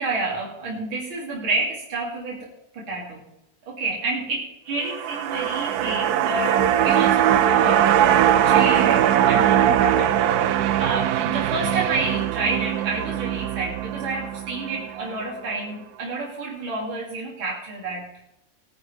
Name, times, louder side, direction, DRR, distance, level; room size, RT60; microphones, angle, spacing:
voice 1, 0.0-3.3 3.7-18.1, right 3 dB, 65° right, -4 dB, 3.6 m, -29 dB
sound 1, 4.8-15.2 15.5-15.6, right 10 dB, 85° right, 0.8 m, -21 dB
21.0 x 10.0 x 3.5 m, 0.82 s
omnidirectional pair, 2.4 m